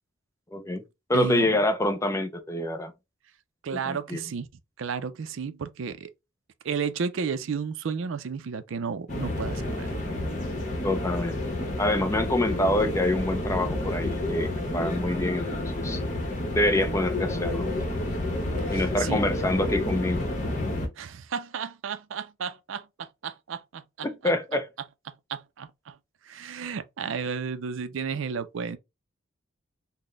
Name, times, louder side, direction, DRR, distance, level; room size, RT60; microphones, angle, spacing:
voice 1, 0.5-0.8 1.1-2.9 3.7-4.2 10.8-11.5 11.8-15.5 15.8-16.0 16.5-17.7 18.7-20.3 24.0-24.7, left 1 dB, 15° left, 0.4 m, -26 dB
voice 2, 1.1-1.6 3.6-4.5 4.8-6.1 6.6-9.9 18.7-19.2 21.0-24.3 25.3-26.0 26.2-28.8, right 6 dB, 70° right, 0.4 m, -33 dB
sound 1, 9.1-20.9, left 1 dB, 35° left, 0.9 m, -30 dB
4.0 x 2.1 x 3.2 m
head